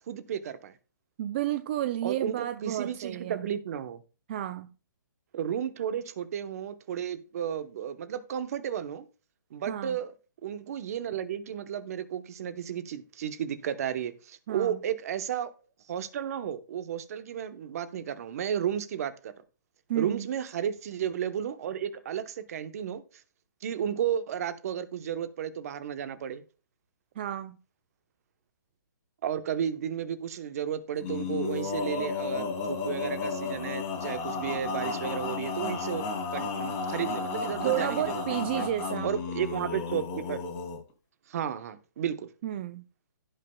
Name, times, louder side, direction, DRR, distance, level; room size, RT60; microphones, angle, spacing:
voice 1, 0.1-0.7 2.0-4.0 5.3-9.0 9.5-10.1 10.4-15.5 15.9-19.3 20.0-23.0 23.6-26.4 29.2-36.0 36.3-38.7 39.0-40.4 41.3-42.3, right 9 dB, 45° right, 0.9 m, -33 dB
voice 2, 1.2-3.5 4.3-4.7 9.7-10.0 14.5-14.8 19.9-20.3 27.2-27.6 37.6-39.1 42.4-42.8, right 12 dB, 30° right, 0.3 m, -31 dB
Male singing, 31.0-40.8, left 4 dB, 25° left, 2.5 m, -33 dB
16.0 x 5.5 x 2.2 m
hypercardioid pair, 155°, 11 cm